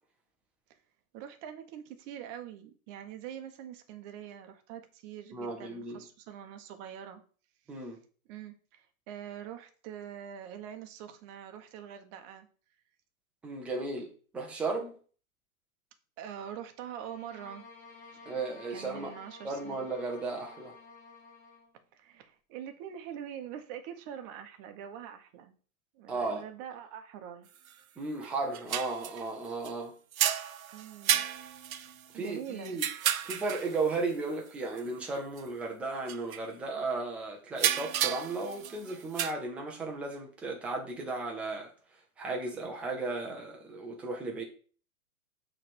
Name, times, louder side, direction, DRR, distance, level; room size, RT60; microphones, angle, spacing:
voice 1, 1.1-7.2 8.3-12.5 16.2-17.6 18.7-19.9 21.9-25.6 25.9-27.5 30.7-31.2 32.1-32.8, right 9 dB, 25° right, 0.9 m, -44 dB
voice 2, 5.3-6.0 7.7-8.0 13.4-14.9 18.3-19.1 19.4-20.8 26.1-26.4 28.0-29.9 32.1-32.8 33.2-41.7 42.2-44.4, right 3 dB, 5° right, 0.4 m, -35 dB
sound 1, 16.8-21.7, left 4 dB, 30° left, 2.7 m, -52 dB
sound 2, 27.6-27.7 28.2-29.7 30.1-33.9 34.8-34.9 35.2-35.4 36.1-36.4 37.5-39.3, right 10 dB, 70° right, 0.7 m, -32 dB
6.5 x 3.3 x 6.0 m
hypercardioid pair, 125°, 44 cm